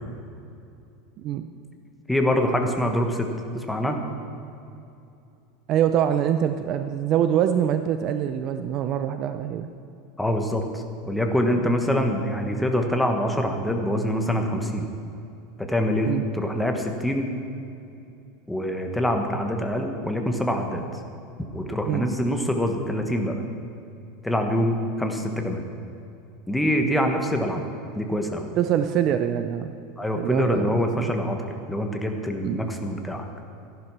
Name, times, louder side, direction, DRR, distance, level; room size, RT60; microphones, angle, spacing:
voice 1, 1.2-1.5 5.7-9.7 11.6-11.7 16.0-16.2 21.9-22.1 28.6-29.7 30.2-30.8 32.4-32.6, right 9 dB, 35° right, 9 dB, 0.5 m, -24 dB
voice 2, 2.1-3.3 3.5-4.0 10.2-14.9 15.6-17.3 18.5-21.0 21.5-23.3 24.2-25.6 26.5-27.6 27.9-28.5 30.0-31.4 31.7-33.3, equal, 5° left, 3 dB, 1.0 m, -25 dB
14.0 x 11.0 x 6.0 m, 2.7 s
supercardioid pair, 170°, 0 cm